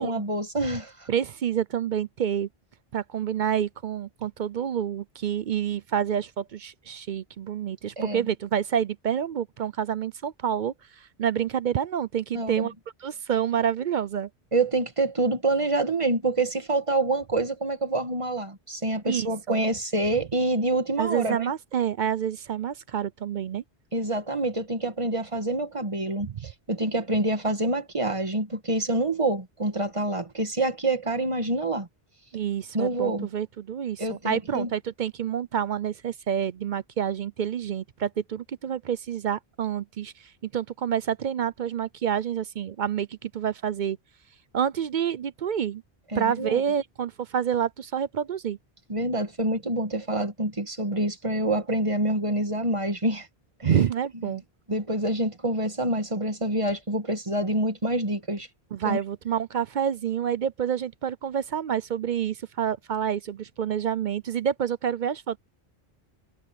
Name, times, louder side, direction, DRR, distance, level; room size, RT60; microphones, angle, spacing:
voice 1, 0.0-1.1 8.0-8.3 12.3-12.7 14.5-21.5 23.9-31.9 32.7-33.3 34.0-34.7 46.1-46.6 48.9-53.3 53.6-53.8 54.2-54.3 54.7-58.5 58.8-59.0, right 2 dB, 30° right, 1.6 m, -27 dB
voice 2, 1.1-2.5 2.9-12.7 13.0-14.3 19.1-19.6 21.0-23.6 26.3-26.5 32.3-44.0 44.5-45.8 46.1-48.6 53.6-54.4 58.7-65.4, right 8 dB, 55° right, 0.6 m, -28 dB
omnidirectional pair, 1.1 m